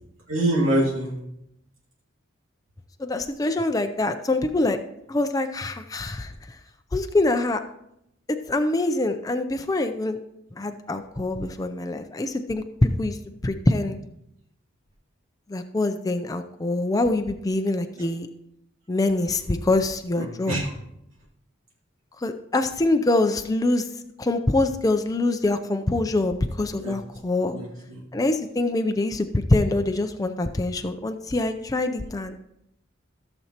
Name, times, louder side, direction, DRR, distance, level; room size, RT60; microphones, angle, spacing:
voice 1, 0.3-1.1 20.1-20.7 26.8-26.9 27.5-28.0, right 1 dB, 80° right, -5 dB, 2.3 m, -25 dB
voice 2, 3.0-4.8 5.1-6.3 6.9-7.6 8.3-10.2 10.5-13.2 13.4-14.0 15.5-18.3 18.9-20.6 22.2-23.9 24.2-27.6 28.1-32.3, left 2 dB, 15° left, 7 dB, 0.4 m, -24 dB
15.0 x 7.0 x 2.9 m, 0.80 s
head